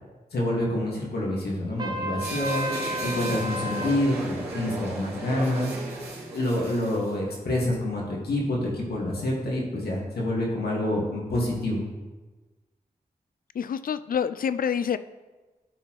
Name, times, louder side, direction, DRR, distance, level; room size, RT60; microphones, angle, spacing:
voice 1, 0.3-5.7 6.3-11.8, left 1 dB, 80° left, -3 dB, 2.0 m, -27 dB
Trumpet, 1.8-4.0, equal, 25° right, 0.9 m, -32 dB
sound 1, 2.2-7.1, right 2 dB, 90° right, 2.4 m, -35 dB
voice 2, 13.5-15.0, left 7 dB, 60° left, 13 dB, 0.4 m, -27 dB
12.5 x 4.3 x 3.2 m, 1.2 s
cardioid pair, 40°, 16 cm